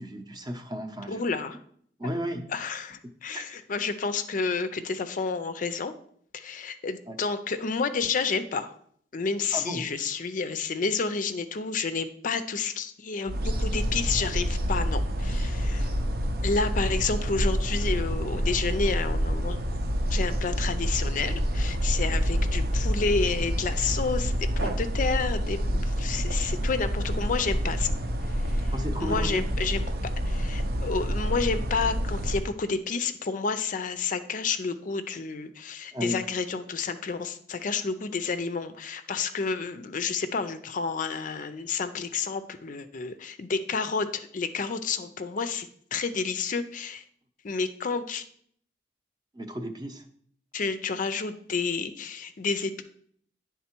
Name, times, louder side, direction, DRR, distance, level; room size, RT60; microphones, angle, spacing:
voice 1, 0.0-1.2 2.0-2.5 3.3-3.6 7.1-7.2 9.5-9.9 22.1-22.2 28.7-29.4 35.9-36.2 49.3-50.0, equal, 25° right, 6 dB, 0.7 m, -34 dB
voice 2, 1.1-1.6 2.5-5.9 6.3-8.7 9.1-15.9 16.4-19.6 20.1-27.9 28.3-28.7 29.0-29.8 30.3-47.0 47.4-48.2 50.5-52.8, left 4 dB, 50° left, 10 dB, 0.4 m, -30 dB
sound 1, 13.3-32.5, equal, 60° right, 0.7 m, -27 dB
9.5 x 3.6 x 4.4 m, 0.63 s
head